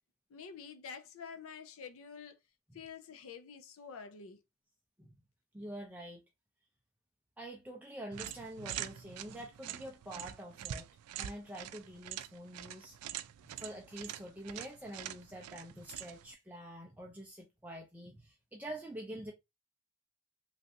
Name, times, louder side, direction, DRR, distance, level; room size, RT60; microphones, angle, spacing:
voice 1, 0.3-2.4 2.7-4.4, left 6 dB, 65° left, 0.5 m, -48 dB
voice 2, 5.5-6.2 7.4-10.9 11.2-13.0 13.4-19.3, right 1 dB, 10° right, 0.4 m, -46 dB
sound 1, 8.1-16.3, right 11 dB, 90° right, 0.3 m, -45 dB
3.2 x 2.5 x 2.6 m
head